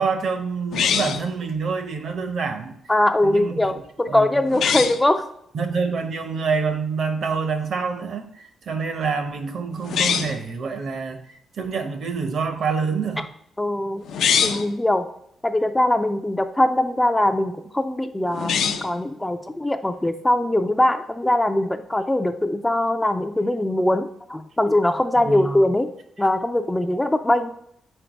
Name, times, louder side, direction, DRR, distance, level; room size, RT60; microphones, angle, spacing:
voice 1, 0.0-2.7 3.2-3.7 4.1-4.4 5.5-13.3 25.2-25.6, right 5 dB, 60° right, 7 dB, 0.8 m, -27 dB
sound 1, 0.7-1.3 4.5-5.0 9.8-10.4 14.0-14.7 18.3-19.0, left 7 dB, 80° left, 0.4 m, -23 dB
voice 2, 2.9-5.3 13.6-14.0 14.4-15.1 15.4-25.9 26.2-27.5, left 1 dB, 10° left, 8 dB, 0.3 m, -21 dB
4.5 x 4.3 x 5.1 m, 0.73 s
cardioid pair, 140°, 0 cm